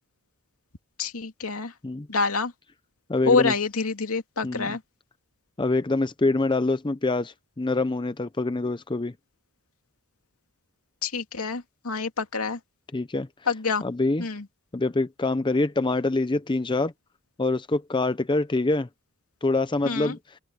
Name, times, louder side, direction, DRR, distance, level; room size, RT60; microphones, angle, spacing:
voice 1, 1.0-1.7 2.1-2.5 3.3-4.8 11.0-12.6 13.5-13.8 14.2-14.5 19.8-20.2, left 4 dB, 75° left, 2.5 m, -26 dB
voice 2, 3.1-3.5 4.4-4.7 5.6-9.1 12.9-13.3 13.8-14.2 14.7-16.9 17.4-18.9 19.4-20.2, left 2 dB, 20° left, 0.6 m, -25 dB
open air
head